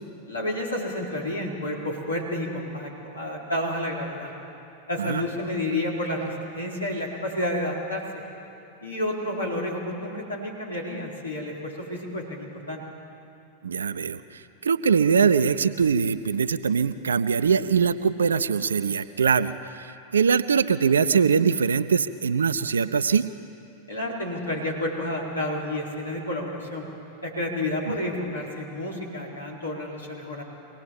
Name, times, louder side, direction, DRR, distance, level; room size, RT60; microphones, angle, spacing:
voice 1, 0.3-4.3 4.9-8.0 8.8-12.8 23.9-26.9 27.2-30.4, left 1 dB, 75° left, -2 dB, 4.5 m, -30 dB
voice 2, 13.6-23.3, right 6 dB, 70° right, 11 dB, 0.6 m, -22 dB
24.5 x 18.0 x 7.5 m, 2.7 s
figure-of-eight pair, 90°, 0 cm